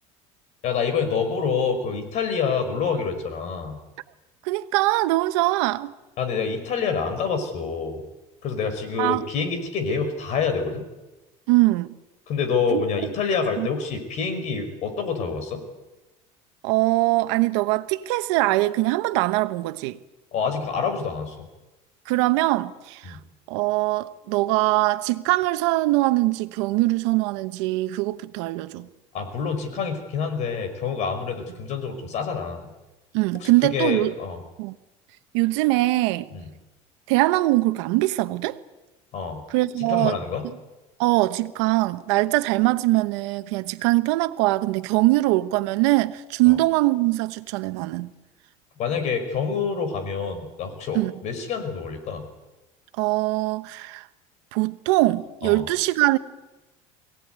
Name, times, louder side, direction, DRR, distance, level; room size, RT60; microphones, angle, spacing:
voice 1, 0.6-3.8 6.2-8.0 8.4-10.9 12.3-15.6 20.3-21.5 23.1-23.2 29.1-32.7 33.4-34.4 36.3-36.5 39.1-39.4 39.8-40.5 46.5-46.6 48.8-52.3 55.4-55.6, left 5 dB, 55° left, 5.6 m, -27 dB
voice 2, 4.4-5.9 9.0-9.2 11.5-11.9 12.7-12.8 13.6-13.7 16.6-20.0 22.1-23.2 23.5-28.9 33.1-34.1 34.6-34.7 35.3-36.3 37.1-38.6 39.5-40.2 41.0-48.1 50.9-51.1 53.0-54.0 54.5-56.2, right 19 dB, 90° right, 1.1 m, -22 dB
23.0 x 17.5 x 9.5 m
cardioid pair, 130°, 14 cm